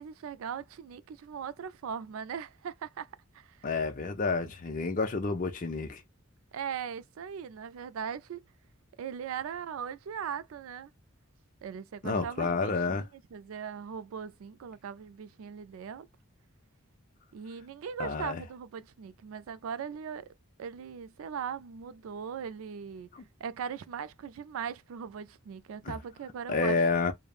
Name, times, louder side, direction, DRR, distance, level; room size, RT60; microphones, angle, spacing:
voice 1, 0.0-3.1 3.3-3.7 6.5-8.4 9.0-10.9 11.6-16.1 17.3-20.3 20.6-23.1 23.4-26.8, right 7 dB, 80° right, 0.3 m, -39 dB
voice 2, 3.6-6.0 12.0-13.1 18.0-18.4 23.1-23.2 25.8-26.0 26.5-27.1, left 4 dB, 40° left, 0.6 m, -29 dB
3.1 x 2.1 x 2.4 m
head